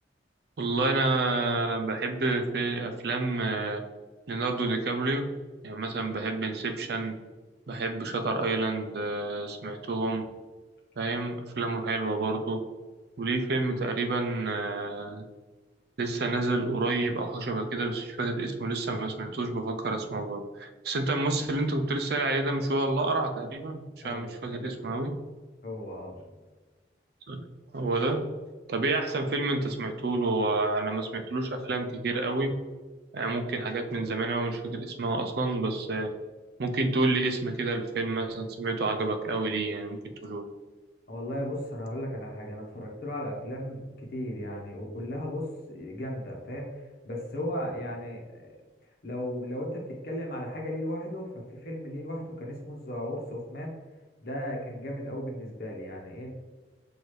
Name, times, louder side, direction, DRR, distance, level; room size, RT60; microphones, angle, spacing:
voice 1, 0.6-3.8 4.3-5.3 5.6-7.1 7.7-10.2 11.0-12.6 13.2-15.2 16.0-25.1 27.3-27.4 27.7-28.2 28.7-32.5 33.1-36.1 36.6-40.4, right 2 dB, 55° right, 6 dB, 0.5 m, -29 dB
voice 2, 24.0-25.0 25.6-26.4 41.1-46.7 47.0-48.5 49.0-53.7 54.2-56.3, equal, 55° left, -1 dB, 1.0 m, -36 dB
6.2 x 2.6 x 3.1 m, 1.3 s
head